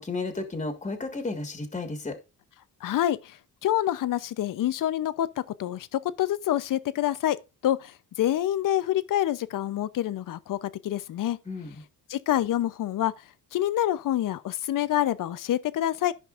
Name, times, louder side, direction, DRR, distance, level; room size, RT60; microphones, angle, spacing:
voice 1, 0.0-2.2 11.5-11.8, left 3 dB, 20° left, 1.7 m, -33 dB
voice 2, 2.8-5.3 5.6-7.4 7.6-11.4 12.1-13.1 13.5-16.1, left 12 dB, 55° left, 0.7 m, -27 dB
14.0 x 5.3 x 2.5 m
cardioid pair, 90°, 38 cm